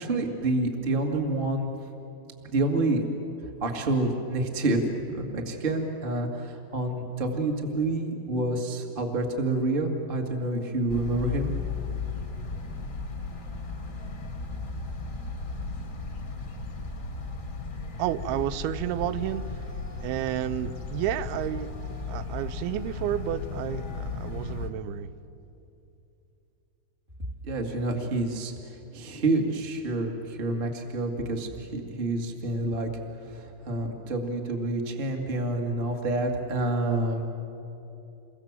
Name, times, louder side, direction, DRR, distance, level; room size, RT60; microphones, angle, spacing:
voice 1, 0.0-1.7 2.5-3.0 3.6-4.8 5.1-11.5 27.4-28.5 28.9-32.9 33.2-37.2, right 2 dB, 25° right, 3 dB, 1.1 m, -28 dB
sound 1, 10.9-24.7, left 4 dB, 45° left, 1.0 m, -35 dB
voice 2, 18.0-19.6 20.0-21.7 22.1-25.1, right 12 dB, 80° right, 15 dB, 2.6 m, -31 dB
28.0 x 23.0 x 7.4 m, 2.8 s
omnidirectional pair, 4.6 m